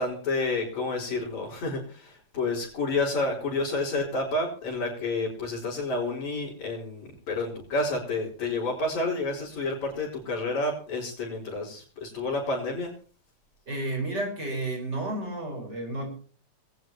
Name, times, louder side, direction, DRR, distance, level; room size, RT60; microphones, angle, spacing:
voice 1, 0.0-12.9, left 2 dB, 65° left, -4 dB, 5.6 m, -30 dB
voice 2, 13.7-16.1, right 2 dB, 35° right, 2 dB, 5.1 m, -31 dB
21.0 x 17.5 x 3.0 m, 0.41 s
omnidirectional pair, 3.5 m